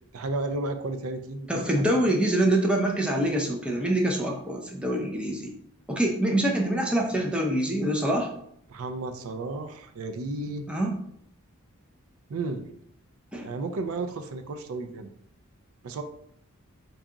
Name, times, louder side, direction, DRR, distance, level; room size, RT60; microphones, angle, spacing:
voice 1, 0.1-1.9 8.7-10.7 12.3-12.7 13.4-15.1 15.8-16.0, right 3 dB, 75° right, 7 dB, 0.4 m, -33 dB
voice 2, 1.5-5.5 5.9-8.3 10.7-10.9 13.3-13.5, right 1 dB, 5° right, 0 dB, 0.5 m, -25 dB
3.9 x 2.3 x 3.7 m, 0.69 s
head